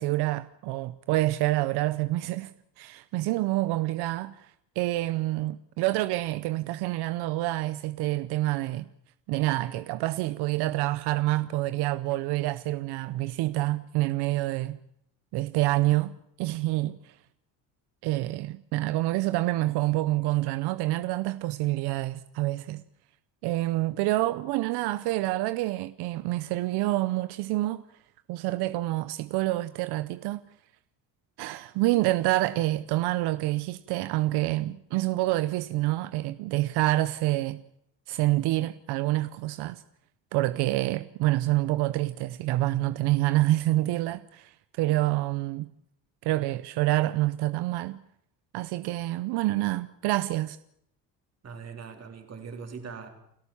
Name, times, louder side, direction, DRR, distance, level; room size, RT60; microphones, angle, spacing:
voice 1, 0.0-2.5 2.8-8.8 9.3-14.8 15.3-16.1 16.4-17.2 18.0-22.8 23.4-27.8 28.3-30.4 31.4-37.6 38.1-39.8 40.3-45.7 46.2-48.0 48.5-50.6, right 17 dB, 85° right, 0.8 m, -27 dB
voice 2, 51.4-53.1, right 5 dB, 40° right, 3.9 m, -41 dB
29.0 x 13.5 x 7.2 m
cardioid pair, 110°, 39 cm